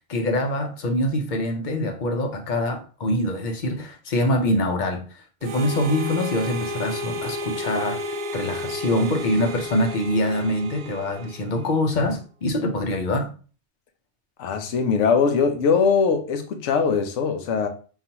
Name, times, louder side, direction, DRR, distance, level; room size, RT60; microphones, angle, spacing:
voice 1, 0.0-13.3, left 1 dB, 50° left, 0.7 m, -24 dB
Harmonica, 5.4-11.8, left 1 dB, 60° right, 0.5 m, -32 dB
voice 2, 14.4-17.7, left 5 dB, 80° left, 0.9 m, -21 dB
5.5 x 2.4 x 2.8 m
omnidirectional pair, 1.2 m